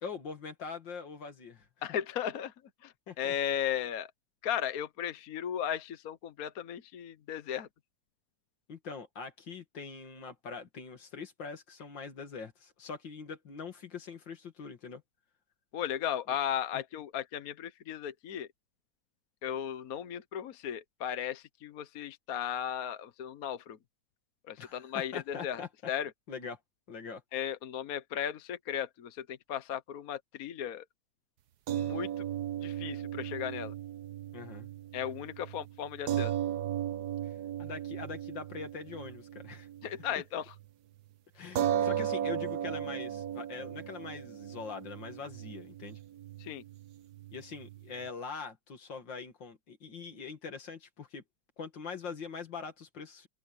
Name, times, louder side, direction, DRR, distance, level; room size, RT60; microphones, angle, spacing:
voice 1, 0.0-1.7 3.1-3.3 8.7-15.0 16.7-16.8 24.6-25.7 26.3-26.6 26.9-27.2 34.3-34.7 37.2-37.3 37.6-39.7 41.3-46.0 47.3-51.2 51.6-53.3, left 5 dB, 75° left, 2.9 m, -43 dB
voice 2, 1.8-2.5 2.8-4.1 4.4-7.7 15.7-18.5 19.4-23.8 24.5-25.6 25.9-26.1 27.3-30.8 31.7-32.3 32.6-33.7 34.9-36.3 39.8-40.5 46.4-46.6, left 9 dB, 55° left, 1.3 m, -36 dB
sound 1, 31.7-40.2 40.5-40.7 41.6-48.1, right 10 dB, 65° right, 1.3 m, -36 dB
open air
omnidirectional pair, 2.0 m